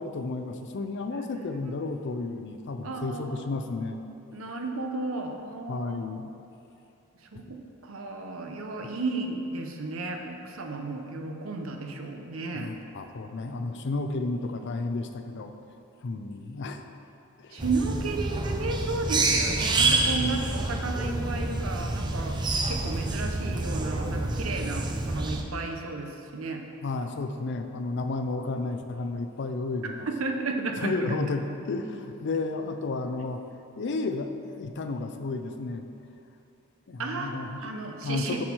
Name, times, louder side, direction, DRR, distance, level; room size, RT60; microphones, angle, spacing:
voice 1, 0.0-4.0 5.7-6.3 7.3-7.6 8.8-8.9 12.5-15.5 16.0-16.8 17.4-17.6 19.9-20.4 26.8-30.1 30.7-33.4 33.8-35.9 36.9-37.7 38.0-38.4, left 3 dB, 55° left, 7 dB, 0.5 m, -32 dB
voice 2, 1.1-2.0 2.8-3.5 4.3-6.0 7.3-7.6 7.8-12.7 17.5-22.3 22.7-26.6 30.1-31.2 37.0-37.4 37.6-38.4, right 3 dB, 70° right, 3 dB, 0.8 m, -33 dB
sound 1, 17.6-25.4, right 2 dB, 20° right, 0.5 m, -28 dB
7.3 x 6.2 x 4.5 m, 2.7 s
head